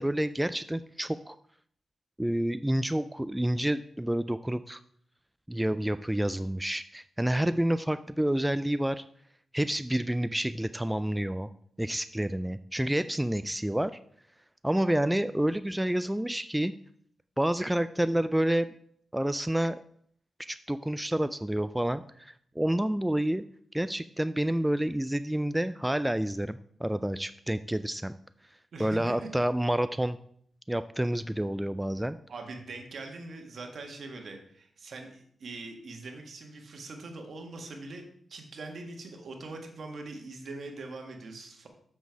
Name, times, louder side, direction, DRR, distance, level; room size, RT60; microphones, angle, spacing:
voice 1, 0.0-1.4 2.2-4.8 5.5-9.0 9.5-11.5 11.8-13.9 14.6-16.7 17.4-18.7 19.1-19.8 20.4-23.4 23.7-28.1 28.8-30.2 30.7-32.2, right 1 dB, 10° right, 12 dB, 0.3 m, -29 dB
voice 2, 28.7-29.3 32.3-38.0 38.3-41.7, right 3 dB, 65° right, 3 dB, 1.6 m, -42 dB
7.1 x 6.2 x 4.7 m, 0.64 s
cardioid pair, 70°, 0 cm